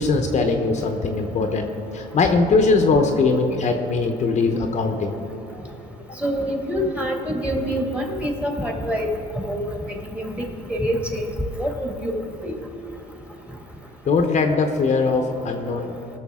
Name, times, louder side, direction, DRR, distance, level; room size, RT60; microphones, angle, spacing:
voice 1, 0.0-5.2 6.1-6.2 14.0-15.9, left 3 dB, 45° left, 5 dB, 0.8 m, -21 dB
voice 2, 6.2-9.1 9.3-9.6 10.1-11.2 11.6-12.1 12.4-12.5, equal, 5° right, 1 dB, 1.7 m, -26 dB
19.0 x 6.7 x 3.6 m, 3.0 s
cardioid pair, 110°, 17 cm